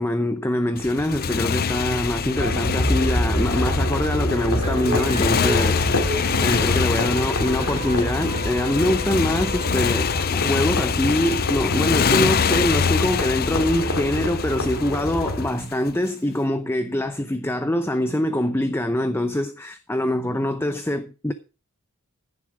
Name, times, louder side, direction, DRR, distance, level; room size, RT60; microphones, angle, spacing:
voice 1, 0.0-21.3, left 1 dB, 10° left, 0.7 m, -24 dB
Motorcycle, 0.8-15.9, left 6 dB, 45° left, 0.5 m, -25 dB
sound 1, 2.4-15.5, left 1 dB, 70° left, 3.2 m, -27 dB
sound 2, 4.6-11.2, right 1 dB, 30° right, 1.6 m, -34 dB
14.5 x 7.2 x 4.8 m
head